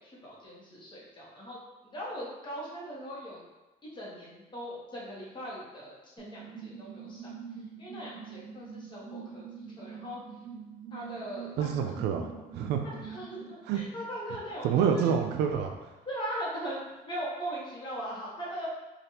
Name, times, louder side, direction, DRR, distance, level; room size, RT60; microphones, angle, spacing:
voice 1, 0.0-1.6 1.8-3.4 3.8-7.3 7.8-9.4 9.8-10.2 10.9-11.9 12.8-15.1 16.1-18.7, equal, 25° left, -6 dB, 1.1 m, -40 dB
sound 1, 6.2-13.5, right 7 dB, 25° right, 0.5 m, -45 dB
voice 2, 11.6-12.8 13.7-13.8 14.6-15.9, right 7 dB, 80° right, 4 dB, 0.4 m, -28 dB
3.2 x 2.4 x 2.8 m, 1.1 s
cardioid pair, 110°, 17 cm